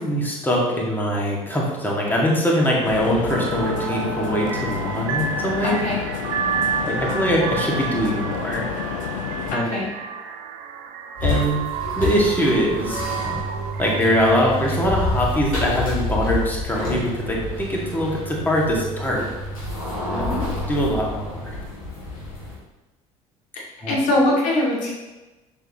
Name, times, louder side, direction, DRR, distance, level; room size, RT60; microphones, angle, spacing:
voice 1, 0.0-5.8 6.8-8.7 9.5-9.7 11.2-11.6 12.0-13.0 13.8-19.3 20.7-21.6 23.8-24.0, equal, 10° left, -3 dB, 1.9 m, -22 dB
sound 1, 2.8-9.6, left 8 dB, 65° left, 0.5 m, -30 dB
sound 2, 3.3-14.6, right 7 dB, 60° right, 0.5 m, -30 dB
voice 2, 5.6-5.9 9.5-9.9 20.1-20.4 23.9-24.9, left 1 dB, 50° left, -5 dB, 2.3 m, -22 dB
sound 3, 11.2-22.6, left 1 dB, 85° left, 2.2 m, -28 dB
6.8 x 5.8 x 3.0 m, 1.1 s
figure-of-eight pair, 60°, 18 cm